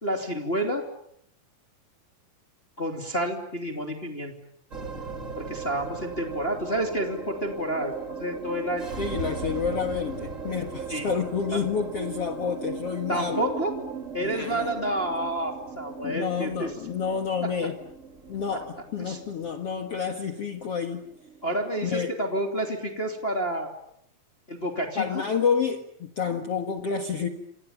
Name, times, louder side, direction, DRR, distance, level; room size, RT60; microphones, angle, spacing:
voice 1, 0.0-0.8 2.8-4.3 5.4-8.9 10.9-11.1 11.5-11.6 13.1-13.7 14.1-16.7 18.5-18.6 19.0-19.2 21.4-23.7 24.5-25.2, right 1 dB, 15° left, 3 dB, 2.9 m, -29 dB
sound 1, 4.7-23.2, right 5 dB, 25° right, 2.6 m, -38 dB
voice 2, 9.0-13.4 14.2-14.7 16.0-17.8 18.3-21.0 21.8-22.1 25.0-27.3, left 6 dB, 50° left, 5 dB, 2.3 m, -29 dB
28.5 x 28.0 x 7.2 m, 0.75 s
omnidirectional pair, 4.1 m